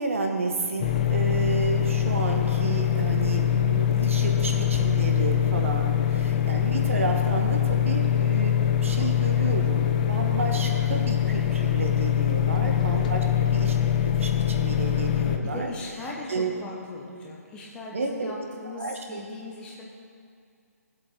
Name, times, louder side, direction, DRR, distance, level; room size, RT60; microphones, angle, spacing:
voice 1, 0.0-13.8 14.2-15.7 16.3-16.5 17.9-18.3 18.7-19.2, right 3 dB, 55° right, 3 dB, 1.4 m, -31 dB
sound 1, 0.8-15.4, left 9 dB, 30° left, 0.7 m, -23 dB
voice 2, 12.6-13.0 15.4-19.8, left 2 dB, 10° left, -2 dB, 1.1 m, -39 dB
17.0 x 8.0 x 3.7 m, 2.3 s
figure-of-eight pair, 135°, 9 cm